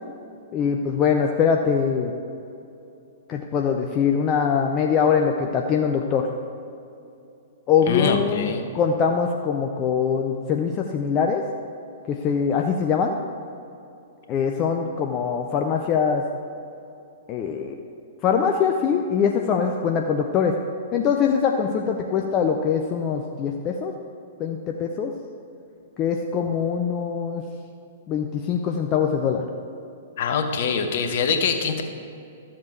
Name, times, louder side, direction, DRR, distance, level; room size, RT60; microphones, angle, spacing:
voice 1, 0.5-2.1 3.3-6.3 7.7-11.4 12.1-13.2 14.3-16.2 17.3-17.8 18.2-20.5 20.9-23.9 24.4-25.1 26.0-27.4 28.1-29.4, left 6 dB, 30° left, 3 dB, 0.6 m, -23 dB
voice 2, 7.9-8.7 30.2-31.8, left 5 dB, 50° left, 6 dB, 1.0 m, -24 dB
13.0 x 7.4 x 4.5 m, 2.7 s
figure-of-eight pair, 110°, 0 cm